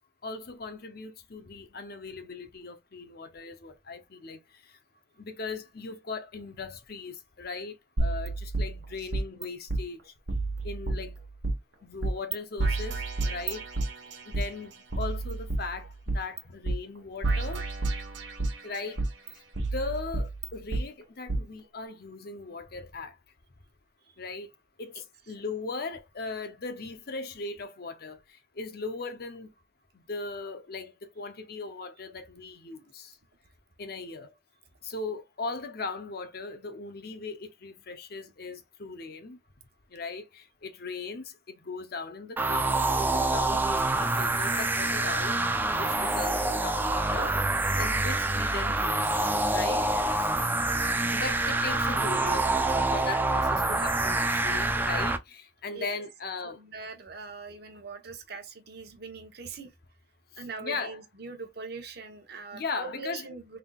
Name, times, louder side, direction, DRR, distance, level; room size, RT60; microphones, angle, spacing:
voice 1, 0.2-4.8 5.2-10.1 10.6-11.2 11.8-13.7 14.3-17.7 18.6-23.1 24.2-24.5 24.8-29.5 29.9-33.2 33.8-34.3 34.8-39.4 39.9-47.4 47.8-49.1 49.5-49.8 51.1-52.5 52.9-56.6 60.6-61.0 62.5-63.2, left 4 dB, 55° left, 0.7 m, -38 dB
sound 1, 8.0-9.4 9.7-9.8 10.3-11.5 12.0-12.3 12.6-14.4 14.9-16.4 16.6-16.8 17.2-18.6 19.0-20.8 21.3-21.4, right 2 dB, 85° right, 1.2 m, -30 dB
sound 2, 42.4-55.2, right 2 dB, 10° right, 0.3 m, -26 dB
voice 2, 55.7-56.0 56.4-59.7 60.4-63.6, right 4 dB, 60° right, 1.0 m, -42 dB
3.8 x 3.6 x 2.3 m
head